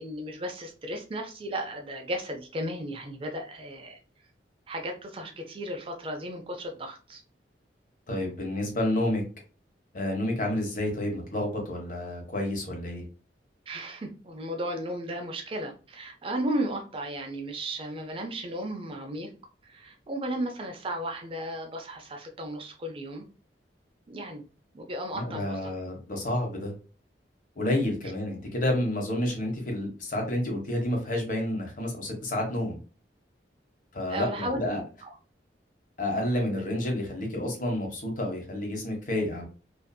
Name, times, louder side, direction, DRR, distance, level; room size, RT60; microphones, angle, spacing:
voice 1, 0.0-4.0 4.7-7.2 13.7-19.3 19.6-23.2 24.1-24.4 24.7-25.7 34.1-34.6 35.0-35.1, right 1 dB, 30° right, 4 dB, 0.4 m, -35 dB
voice 2, 8.1-9.2 9.9-13.0 25.1-26.7 27.6-32.8 33.9-34.8 36.0-39.4, left 1 dB, 50° left, 1 dB, 0.8 m, -29 dB
2.6 x 2.5 x 2.2 m, 0.36 s
head